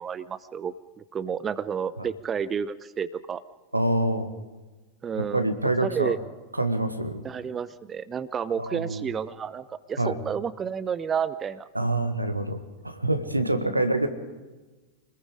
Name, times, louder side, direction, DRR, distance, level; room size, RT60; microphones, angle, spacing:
voice 1, 0.0-3.4 5.0-5.5 5.8-6.2 7.2-11.7 13.5-13.7, right 7 dB, 20° right, 15 dB, 0.7 m, -31 dB
voice 2, 3.7-4.3 5.1-6.1 6.6-7.2 8.6-9.1 10.0-10.1 11.7-14.1, right 1 dB, 85° right, 8 dB, 1.6 m, -26 dB
26.0 x 20.5 x 5.0 m, 1.2 s
figure-of-eight pair, 90°, 0 cm